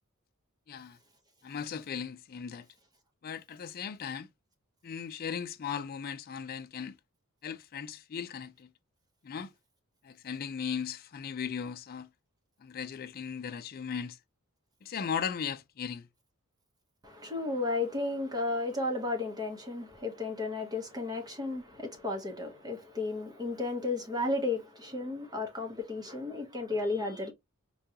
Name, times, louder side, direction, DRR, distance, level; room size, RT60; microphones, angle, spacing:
voice 1, 1.4-2.6 3.2-4.3 4.8-6.9 7.4-8.7 9.2-9.5 10.0-12.1 12.6-14.2 14.8-16.0, left 7 dB, 45° left, 0.4 m, -37 dB
voice 2, 17.0-27.3, left 2 dB, 20° right, 0.8 m, -33 dB
4.9 x 2.3 x 2.7 m
head